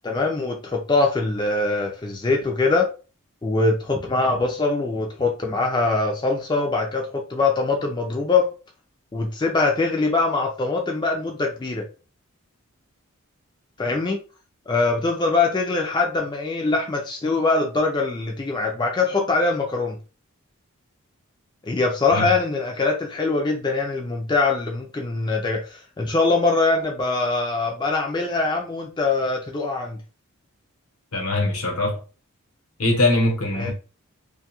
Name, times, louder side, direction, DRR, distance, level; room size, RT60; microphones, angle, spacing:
voice 1, 0.0-2.9 3.4-8.5 9.1-11.8 13.8-14.2 14.7-20.0 21.7-30.0 33.6-33.7, left 3 dB, 20° left, 0.3 m, -23 dB
voice 2, 31.1-32.0 32.8-33.7, left 2 dB, 80° left, 0.9 m, -22 dB
2.6 x 2.3 x 2.9 m
head